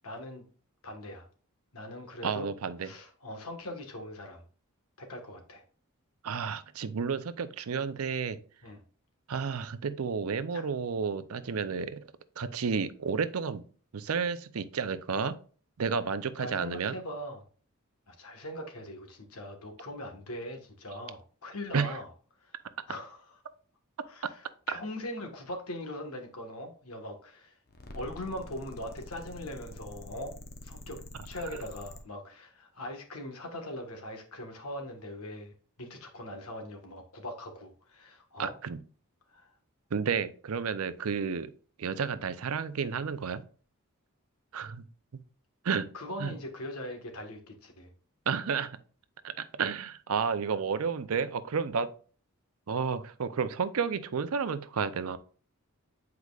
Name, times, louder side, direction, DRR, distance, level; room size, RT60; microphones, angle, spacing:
voice 1, 0.0-0.4 0.8-1.3 1.7-2.5 2.8-4.4 5.0-5.6 8.6-8.8 10.5-10.6 16.4-17.4 18.1-22.1 22.4-22.5 22.9-23.2 24.1-27.6 27.9-30.3 30.6-38.5 39.3-39.5 45.9-47.9, left 1 dB, 90° left, 1.5 m, -41 dB
voice 2, 2.2-2.9 6.2-8.4 9.3-12.0 12.4-13.7 13.9-15.3 15.8-16.9 21.7-22.0 24.7-24.8 38.4-38.8 39.9-41.5 41.8-43.4 44.5-44.8 45.6-45.9 46.2-46.3 48.3-48.8 49.2-51.9 52.7-55.2, right 6 dB, 80° right, 0.6 m, -31 dB
sound 1, 27.7-32.0, left 1 dB, 45° left, 0.9 m, -46 dB
8.2 x 4.7 x 2.4 m
head